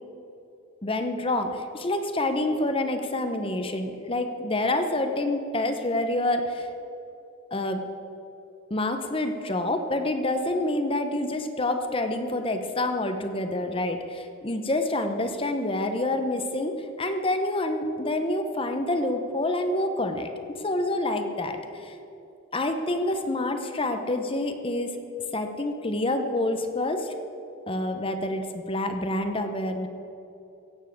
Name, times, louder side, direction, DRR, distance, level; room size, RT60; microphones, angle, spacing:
voice 1, 0.8-6.7 7.5-7.8 8.7-21.9 22.5-25.0 25.3-27.1 27.7-29.9, left 1 dB, 25° left, 6 dB, 0.9 m, -27 dB
16.5 x 7.5 x 7.7 m, 2.8 s
head